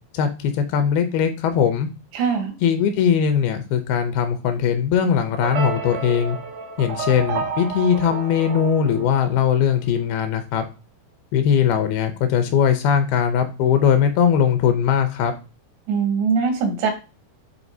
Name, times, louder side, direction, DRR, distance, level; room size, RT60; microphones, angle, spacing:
voice 1, 0.1-1.9 2.6-6.4 6.8-10.6 11.3-15.3, left 8 dB, 75° left, 7 dB, 2.5 m, -20 dB
voice 2, 2.1-2.5 15.9-16.9, right 5 dB, 90° right, 3 dB, 3.7 m, -21 dB
sound 1, 5.4-9.7, right 5 dB, 75° right, 1.5 m, -30 dB
10.0 x 3.8 x 2.7 m, 0.31 s
omnidirectional pair, 4.8 m